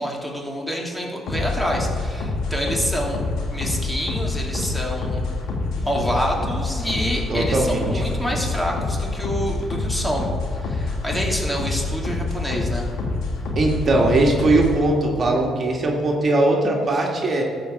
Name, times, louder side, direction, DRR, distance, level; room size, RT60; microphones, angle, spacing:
voice 1, 0.0-3.2 3.5-5.2 5.5-10.3 10.6-12.9, equal, 10° left, -1 dB, 2.8 m, -27 dB
sound 1, 1.3-14.8, left 3 dB, 75° left, 2.0 m, -27 dB
voice 2, 7.3-8.0 13.5-17.4, right 2 dB, 45° right, 0 dB, 1.9 m, -20 dB
13.5 x 5.3 x 7.5 m, 2.2 s
supercardioid pair, 60°, 0 cm